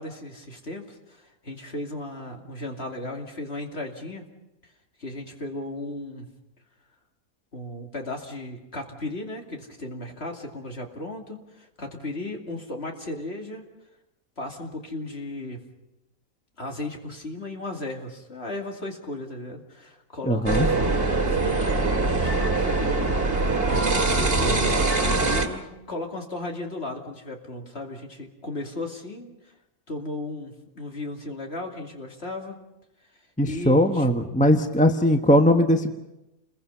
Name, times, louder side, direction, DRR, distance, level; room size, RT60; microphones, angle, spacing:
voice 1, 0.0-4.2 5.0-6.3 7.5-13.6 14.4-15.6 16.6-23.7 24.0-29.5 29.9-32.6 33.4-34.1, left 2 dB, 45° left, 2 dB, 2.9 m, -35 dB
voice 2, 20.3-20.7 33.4-35.9, equal, 5° left, 6 dB, 0.9 m, -20 dB
sound 1, 20.5-25.5, right 3 dB, 40° right, 2.4 m, -23 dB
29.5 x 21.5 x 5.6 m, 0.94 s
omnidirectional pair, 1.5 m